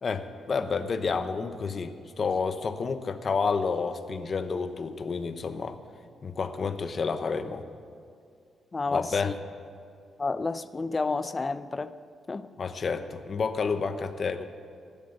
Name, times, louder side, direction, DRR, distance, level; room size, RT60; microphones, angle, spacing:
voice 1, 0.0-5.8 6.2-7.6 8.9-9.3 12.6-14.5, left 5 dB, 40° left, 9 dB, 1.0 m, -30 dB
voice 2, 8.7-9.3 10.2-11.9 12.3-12.5, left 3 dB, 25° left, 13 dB, 0.5 m, -30 dB
15.5 x 12.0 x 6.7 m, 2.4 s
cardioid pair, 130°, 0 cm